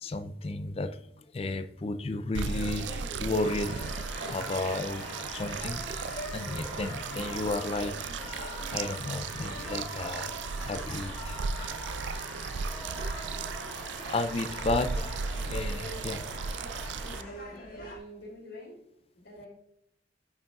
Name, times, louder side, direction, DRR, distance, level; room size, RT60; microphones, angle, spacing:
voice 1, 0.0-1.0 1.3-3.9 4.3-6.0 6.3-7.9 8.3-11.8 14.1-15.1 15.5-16.2, left 2 dB, 35° left, 10 dB, 0.4 m, -33 dB
sound 1, 2.3-17.2, right 5 dB, 85° right, 0.4 m, -36 dB
sound 2, 2.5-18.0, left 1 dB, 55° left, 2.0 m, -45 dB
sound 3, 3.4-17.3, left 2 dB, 10° left, 1.5 m, -44 dB
voice 2, 17.1-18.9 19.1-19.5, right 1 dB, 80° left, -8 dB, 2.8 m, -46 dB
8.6 x 6.5 x 2.4 m, 0.79 s
head